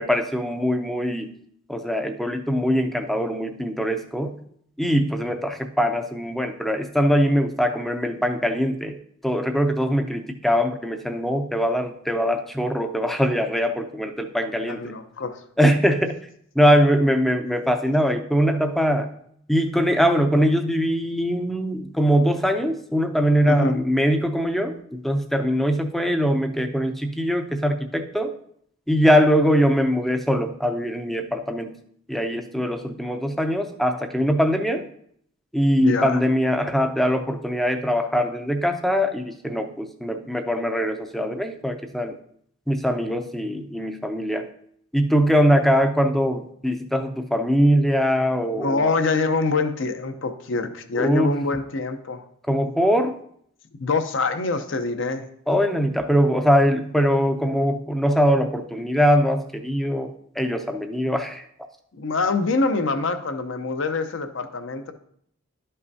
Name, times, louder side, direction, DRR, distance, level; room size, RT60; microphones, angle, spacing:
voice 1, 0.0-1.3 1.7-4.4 4.8-9.0 9.2-14.9 15.6-16.1 16.6-19.1 19.5-28.3 28.9-31.7 32.1-34.8 35.5-42.1 42.7-44.5 44.9-49.0 51.0-51.4 52.5-53.1 55.5-61.4, equal, ahead, 6 dB, 0.4 m, -22 dB
voice 2, 14.7-15.4 23.4-23.8 35.8-36.2 48.6-52.2 53.8-55.2 62.0-64.9, left 3 dB, 60° left, 8 dB, 0.7 m, -25 dB
11.5 x 5.5 x 2.7 m, 0.67 s
head